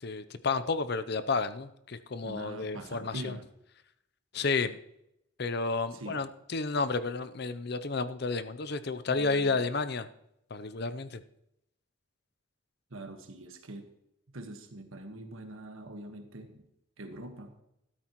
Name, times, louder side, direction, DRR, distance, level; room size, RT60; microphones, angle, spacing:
voice 1, 0.0-3.3 4.3-4.8 5.4-10.1 10.5-11.2, left 4 dB, 50° left, 12 dB, 0.6 m, -31 dB
voice 2, 2.2-3.5 5.9-6.2 9.1-9.6 12.9-13.9 14.3-16.7 17.0-17.5, right 1 dB, 80° right, 6 dB, 1.5 m, -44 dB
13.0 x 13.0 x 3.1 m, 0.81 s
head